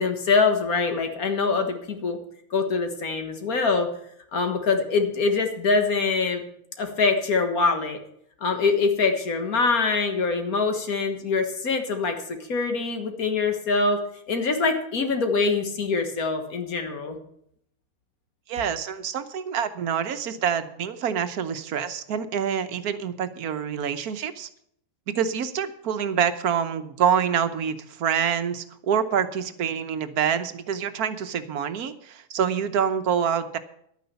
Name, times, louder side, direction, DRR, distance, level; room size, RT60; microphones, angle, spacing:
voice 1, 0.0-2.2 2.5-3.9 4.3-6.4 6.8-8.0 8.4-14.0 14.3-17.2, left 4 dB, 70° left, 6 dB, 2.0 m, -24 dB
voice 2, 18.5-24.5 25.1-33.6, right 8 dB, 75° right, 10 dB, 1.4 m, -26 dB
11.5 x 9.4 x 6.9 m, 0.70 s
omnidirectional pair, 1.6 m